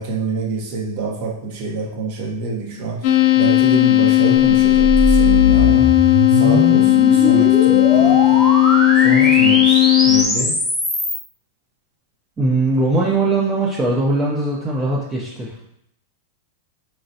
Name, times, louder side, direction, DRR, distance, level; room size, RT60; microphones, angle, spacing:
voice 1, 0.0-5.9 6.3-8.4 9.0-10.5, right 3 dB, 55° right, 1 dB, 0.9 m, -26 dB
sound 1, 3.0-10.2, left 18 dB, 55° left, 0.5 m, -14 dB
sound 2, 4.5-11.2, left 1 dB, 10° left, 1.1 m, -21 dB
voice 2, 12.4-15.6, right 2 dB, 20° right, -5 dB, 0.7 m, -20 dB
3.8 x 3.2 x 2.7 m, 0.74 s
hypercardioid pair, 120°, 0 cm